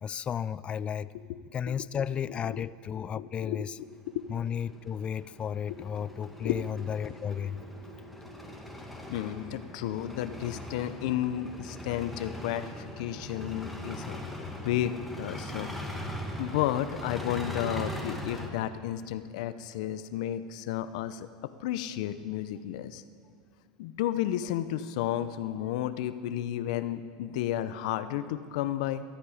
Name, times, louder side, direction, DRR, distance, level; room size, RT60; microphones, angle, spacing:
voice 1, 0.0-1.1 1.5-3.8 4.3-7.6, left 8 dB, 30° left, 18 dB, 0.4 m, -33 dB
voice 2, 2.3-2.6 3.1-4.2 6.4-6.6 9.1-14.2 14.6-15.7 16.4-21.3 21.6-23.0 23.8-29.0, left 12 dB, 70° left, 12 dB, 0.7 m, -32 dB
sound 1, 3.9-18.5, left 1 dB, ahead, 1.8 m, -40 dB
18.5 x 13.0 x 5.0 m, 2.3 s
supercardioid pair, 115°, 4 cm